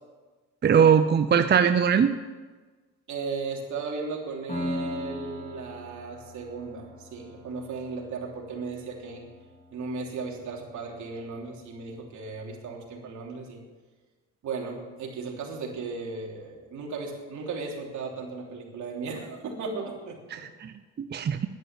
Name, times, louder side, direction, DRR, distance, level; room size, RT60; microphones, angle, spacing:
voice 1, 0.6-2.1 20.3-21.5, right 7 dB, 35° right, 9 dB, 0.6 m, -21 dB
voice 2, 3.1-9.2 9.7-13.6 14.4-20.5, right 4 dB, 70° right, 0 dB, 3.2 m, -36 dB
Piano, 4.5-11.9, equal, 25° left, 3.9 m, -40 dB
11.0 x 10.5 x 8.2 m, 1.3 s
cardioid pair, 90°, 30 cm